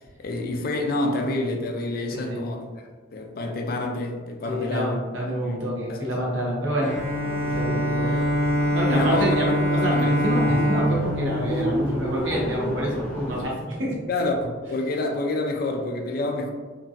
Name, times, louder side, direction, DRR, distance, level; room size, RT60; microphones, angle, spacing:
voice 1, 0.2-5.1 5.4-5.6 5.9-6.1 8.0-8.3 8.9-9.3 9.9-10.1 14.1-16.5, left 2 dB, 50° left, 3 dB, 0.4 m, -28 dB
voice 2, 2.1-2.4 4.5-6.9 7.4-8.1 8.7-13.9, equal, 90° right, -3 dB, 0.9 m, -27 dB
Bowed string instrument, 6.8-12.5, equal, 40° right, 0.9 m, -24 dB
sound 1, 6.9-13.4, right 1 dB, 10° left, 0.7 m, -32 dB
2.9 x 2.4 x 2.6 m, 1.4 s
head